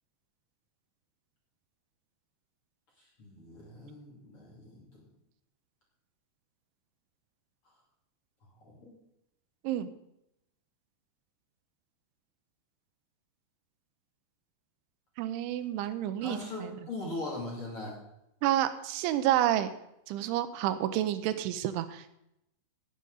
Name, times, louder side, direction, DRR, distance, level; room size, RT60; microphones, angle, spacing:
voice 1, 3.0-4.9 8.7-8.9 16.2-18.0, left 2 dB, 35° left, -4 dB, 2.7 m, -40 dB
voice 2, 15.2-16.8 18.4-19.7 20.1-22.1, right 12 dB, 85° right, 11 dB, 3.1 m, -29 dB
17.5 x 7.8 x 3.9 m, 0.82 s
omnidirectional pair, 5.4 m